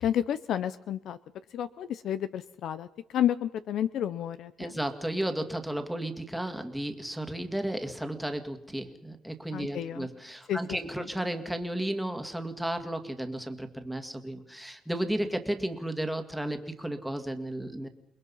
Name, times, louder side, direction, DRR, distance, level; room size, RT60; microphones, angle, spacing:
voice 1, 0.0-1.2 1.5-4.8 9.5-10.1 10.5-11.1, left 10 dB, 65° left, 13 dB, 0.7 m, -31 dB
voice 2, 4.6-17.9, right 1 dB, ahead, 6 dB, 2.2 m, -33 dB
29.0 x 21.0 x 5.6 m, 0.84 s
cardioid pair, 100°, 0 cm